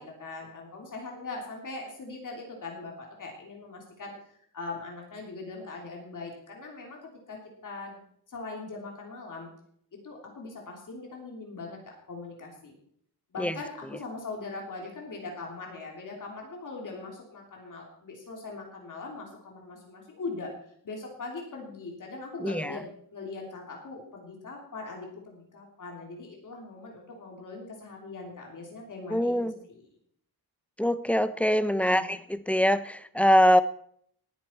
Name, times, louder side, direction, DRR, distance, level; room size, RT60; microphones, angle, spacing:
voice 1, 0.0-7.0 7.3-8.0 8.3-9.5 9.9-12.7 13.3-20.5 20.8-29.3 29.7-29.8 31.8-32.1, left 3 dB, 50° left, 0 dB, 3.2 m, -41 dB
voice 2, 22.4-22.8 29.1-29.5 30.8-33.6, equal, 5° left, 13 dB, 0.5 m, -23 dB
19.0 x 10.5 x 4.5 m, 0.65 s
wide cardioid pair, 160°, 39 cm